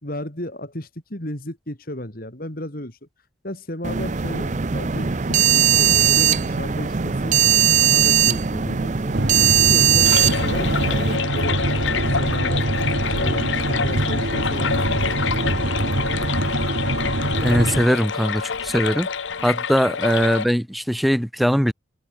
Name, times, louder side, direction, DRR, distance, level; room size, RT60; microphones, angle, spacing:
voice 1, 0.0-3.0 3.4-7.3 7.8-12.7 13.1-15.9, left 1 dB, 50° left, 3.3 m, -34 dB
sound 1, 3.8-11.2, right 9 dB, 40° right, 0.6 m, -19 dB
sound 2, 9.1-17.9, right 1 dB, 60° right, 1.4 m, -24 dB
sound 3, 10.0-20.5, left 6 dB, 70° left, 1.0 m, -27 dB
voice 2, 17.4-19.1 19.4-21.7, equal, ahead, 0.9 m, -20 dB
head